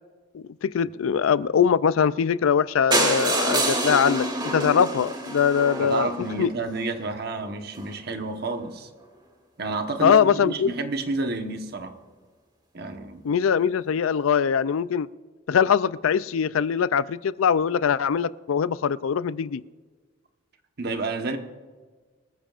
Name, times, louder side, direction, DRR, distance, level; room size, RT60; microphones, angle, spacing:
voice 1, 0.3-6.1 6.4-6.5 10.0-10.7 13.2-15.1 15.5-19.6, left 7 dB, 85° left, 18 dB, 0.4 m, -22 dB
sound 1, 2.9-6.8 7.4-7.5 7.8-7.9 8.2-8.3 8.4-8.5, right 2 dB, 20° right, 2.6 m, -26 dB
voice 2, 5.8-8.9 9.6-11.9 12.7-13.2 20.8-21.4, right 3 dB, 50° right, 6 dB, 1.2 m, -30 dB
24.5 x 14.5 x 2.5 m, 1.4 s
head